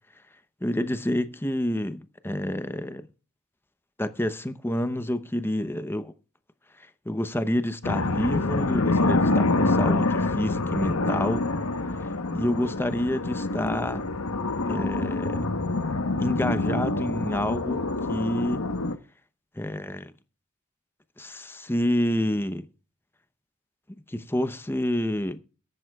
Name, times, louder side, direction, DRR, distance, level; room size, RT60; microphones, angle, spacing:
voice 1, 0.6-3.0 4.0-6.1 6.8-11.5 12.0-14.0 14.7-15.4 16.2-17.8 18.1-18.7 19.5-20.1 21.2-22.7 24.1-25.4, left 1 dB, 10° left, 0.7 m, -28 dB
sound 1, 7.8-19.0, left 2 dB, 80° left, 1.1 m, -26 dB
22.0 x 11.0 x 2.3 m
head